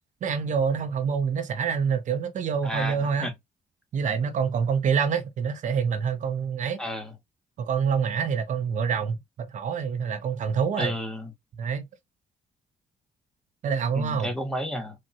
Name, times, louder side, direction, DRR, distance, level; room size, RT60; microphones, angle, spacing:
voice 1, 0.2-3.3 3.9-6.8 7.6-10.9 11.6-11.9 13.6-14.3, right 6 dB, 60° right, 0.5 m, -26 dB
voice 2, 2.6-3.0 3.2-3.3 6.8-7.1 10.8-11.3 14.0-14.9, equal, 5° left, 0.9 m, -31 dB
3.5 x 2.1 x 2.6 m
cardioid pair, 100°, 15 cm